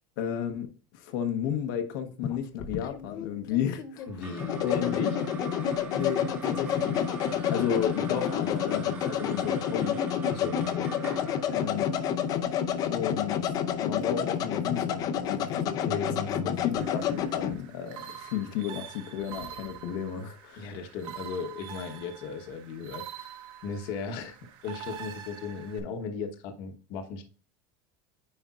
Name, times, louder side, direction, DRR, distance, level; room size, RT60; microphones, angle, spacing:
voice 1, 0.2-4.2 4.6-5.0 5.9-7.1 7.5-10.0 11.5-12.0 12.9-13.4 13.8-20.7, left 9 dB, 75° left, 1.1 m, -33 dB
sound 1, 2.2-17.6, left 8 dB, 35° left, 0.6 m, -29 dB
sound 2, 4.0-14.6, right 4 dB, 20° right, 1.6 m, -44 dB
voice 2, 4.1-5.2 10.3-10.9 15.8-16.6 20.6-24.4 24.6-27.2, left 4 dB, 50° left, 1.1 m, -37 dB
sound 3, 16.8-25.8, right 9 dB, 45° right, 1.2 m, -45 dB
9.7 x 5.0 x 2.5 m
cardioid pair, 165°, 11 cm